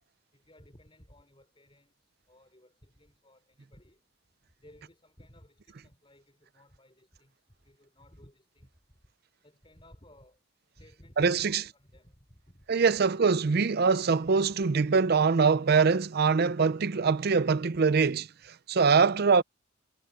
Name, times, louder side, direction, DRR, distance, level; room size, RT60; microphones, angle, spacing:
voice 1, 0.3-4.0 4.6-7.4 7.6-8.7 9.4-10.4 10.8-12.7 14.6-14.7, left 1 dB, 25° left, 5.3 m, -58 dB
voice 2, 11.2-11.6 12.7-19.4, right 5 dB, 50° right, 0.5 m, -23 dB
head